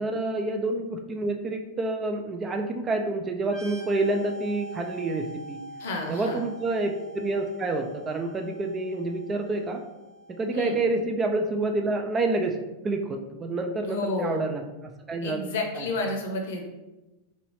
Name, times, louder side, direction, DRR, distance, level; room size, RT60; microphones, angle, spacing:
voice 1, 0.0-5.6 6.1-9.8 10.3-12.6 12.8-14.6 15.1-15.5 15.8-15.9, right 2 dB, 20° right, 3 dB, 0.3 m, -28 dB
sound 1, 3.4-10.9, equal, 5° left, 0.9 m, -44 dB
voice 2, 5.8-6.4 10.5-10.8 13.8-14.5 15.2-16.6, left 2 dB, 55° left, 2 dB, 0.7 m, -30 dB
3.1 x 2.6 x 3.0 m, 1.0 s
figure-of-eight pair, 90°, 0 cm